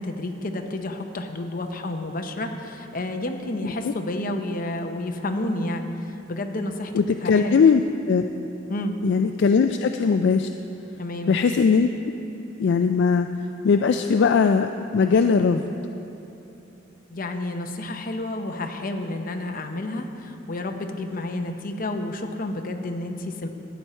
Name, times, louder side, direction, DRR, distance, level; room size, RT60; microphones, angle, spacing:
voice 1, 0.0-6.9 7.2-7.6 8.7-9.0 11.0-11.3 17.1-23.5, left 1 dB, 45° left, 5 dB, 0.8 m, -30 dB
voice 2, 6.9-8.3 9.0-10.5 11.3-12.1 12.6-13.3 13.6-15.7, left 5 dB, 65° left, 7 dB, 0.3 m, -20 dB
13.5 x 9.2 x 4.3 m, 3.0 s
head